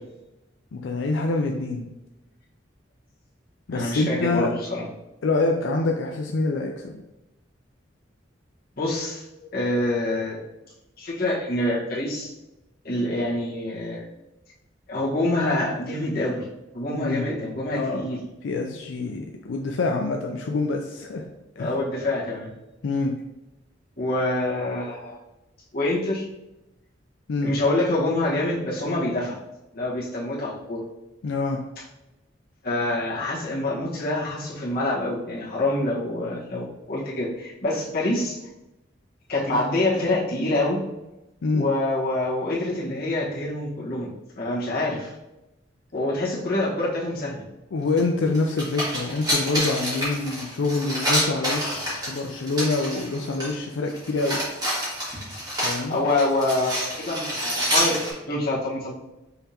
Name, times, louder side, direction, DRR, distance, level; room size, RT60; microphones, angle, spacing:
voice 1, 0.7-1.9 3.7-4.5 5.2-6.9 16.9-17.3 17.7-18.1 18.4-21.2 21.6-21.7 22.8-23.2 27.3-27.5 31.2-31.6 41.4-41.7 47.7-54.4 55.6-56.0, left 3 dB, 85° left, 2 dB, 0.4 m, -26 dB
voice 2, 3.7-4.9 8.8-10.4 11.0-12.3 12.8-14.0 14.9-16.4 16.7-18.2 21.6-22.5 24.0-25.2 25.7-26.3 27.4-29.4 29.7-30.8 32.6-38.4 39.3-40.8 41.5-44.1 44.4-45.1 45.9-47.4 55.9-58.9, left 2 dB, 55° left, -6 dB, 1.4 m, -26 dB
sound 1, 48.0-48.1 48.3-53.5 53.9-58.1, equal, 20° right, 1.6 m, -27 dB
5.5 x 3.4 x 2.8 m, 0.97 s
head